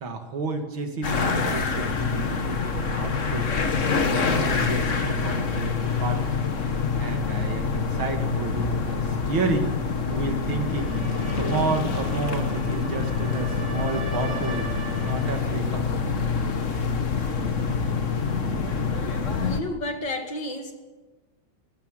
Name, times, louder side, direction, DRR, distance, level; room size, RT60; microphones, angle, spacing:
voice 1, 0.0-3.5 4.0-6.4 7.0-9.7 10.1-11.0 11.3-15.8, right 3 dB, 75° right, 4 dB, 3.0 m, -31 dB
sound 1, 1.0-19.6, left 5 dB, 40° left, 1.7 m, -26 dB
sound 2, 10.6-15.5, right 2 dB, 35° right, 6.9 m, -40 dB
voice 2, 19.4-20.7, left 1 dB, 60° left, 4 dB, 3.0 m, -31 dB
19.0 x 15.0 x 9.2 m, 1.2 s
omnidirectional pair, 2.2 m